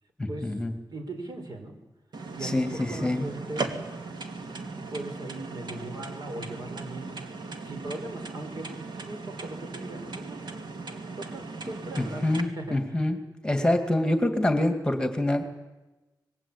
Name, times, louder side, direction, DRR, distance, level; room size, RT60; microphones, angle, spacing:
voice 1, 0.2-0.7 2.4-3.3 12.0-13.2 13.4-15.5, left 1 dB, 10° left, 6 dB, 2.3 m, -26 dB
voice 2, 0.9-1.8 2.3-3.9 4.9-7.1 7.6-10.7 11.2-13.0, right 2 dB, 60° right, 5 dB, 5.0 m, -39 dB
sound 1, 2.1-12.4, right 3 dB, 75° right, 2.8 m, -38 dB
26.0 x 21.0 x 8.9 m, 1.1 s
wide cardioid pair, 125°, 7 cm